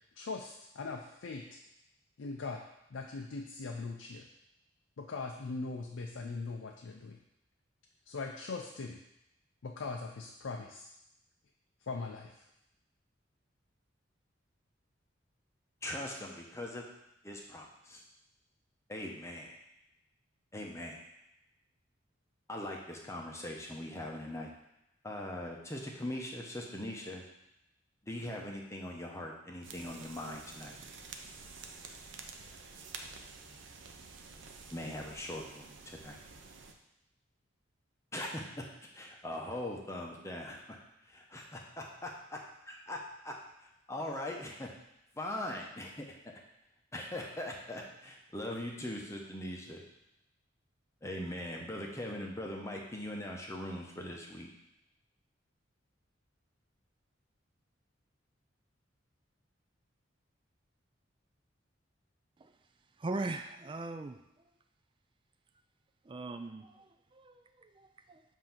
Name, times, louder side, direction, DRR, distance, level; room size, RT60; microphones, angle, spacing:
voice 1, 0.2-1.6 2.2-2.6 2.9-4.3 5.0-7.2 8.1-9.0 9.6-10.9 11.8-12.4, left 3 dB, 80° left, 2 dB, 0.5 m, -40 dB
voice 2, 15.8-16.8 17.2-18.0 18.9-19.5 20.5-21.0 22.5-24.5 25.0-27.2 28.0-30.8 34.7-36.2 38.1-38.6 38.9-40.8 41.1-43.3 43.9-44.7 45.1-46.1 46.9-49.8 51.0-54.5, left 1 dB, 15° left, 0 dB, 0.8 m, -41 dB
sound 1, 29.6-36.7, right 4 dB, 70° right, 0.6 m, -50 dB
voice 3, 63.0-64.2 66.1-68.2, right 2 dB, 25° right, 8 dB, 0.3 m, -40 dB
7.5 x 2.8 x 5.8 m, 0.86 s
head